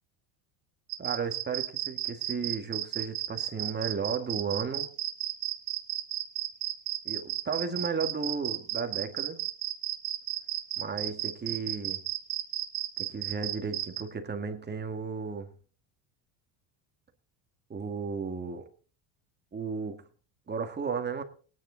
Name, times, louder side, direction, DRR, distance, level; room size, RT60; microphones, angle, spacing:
sound 1, 0.9-14.0, right 16 dB, 70° right, 1.5 m, -33 dB
voice 1, 1.0-4.9 7.0-9.4 10.8-12.0 13.0-15.5 17.7-18.7 19.5-20.0 20.5-21.2, right 5 dB, 20° right, 2.0 m, -34 dB
18.5 x 9.8 x 4.1 m
supercardioid pair, 110°, 44 cm